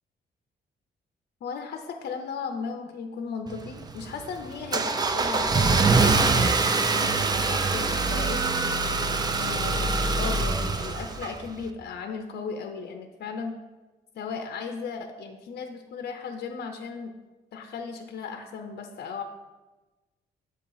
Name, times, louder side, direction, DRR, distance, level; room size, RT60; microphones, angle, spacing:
voice 1, 1.4-7.1 7.5-8.4 9.4-13.6 14.1-17.1 17.5-19.2, left 5 dB, 65° left, 5 dB, 0.5 m, -36 dB
Car / Engine starting, 3.5-11.6, right 3 dB, 25° right, 0.4 m, -24 dB
7.6 x 2.8 x 5.4 m, 1.1 s
wide cardioid pair, 145°, 17 cm